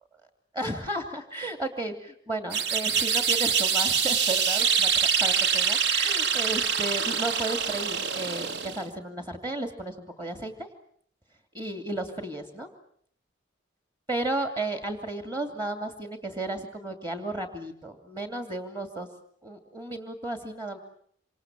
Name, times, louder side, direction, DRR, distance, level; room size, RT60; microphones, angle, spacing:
voice 1, 0.6-4.9 5.2-10.7 11.5-12.7 14.1-19.1 19.4-20.8, right 2 dB, 20° right, 6 dB, 2.6 m, -34 dB
sound 1, 2.5-8.9, right 6 dB, 60° right, 1.3 m, -25 dB
27.5 x 26.5 x 7.5 m, 0.63 s
head